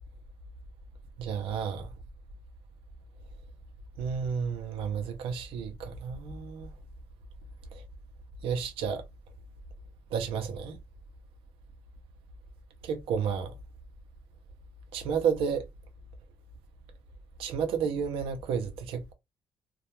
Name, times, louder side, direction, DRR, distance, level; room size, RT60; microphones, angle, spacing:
voice 1, 1.2-1.9 4.0-6.7 7.7-7.8 8.4-9.0 10.1-10.8 12.8-13.5 14.9-15.6 17.4-19.1, right 6 dB, 85° right, 0.5 m, -31 dB
2.3 x 2.2 x 2.8 m
cardioid pair, 175°, 9 cm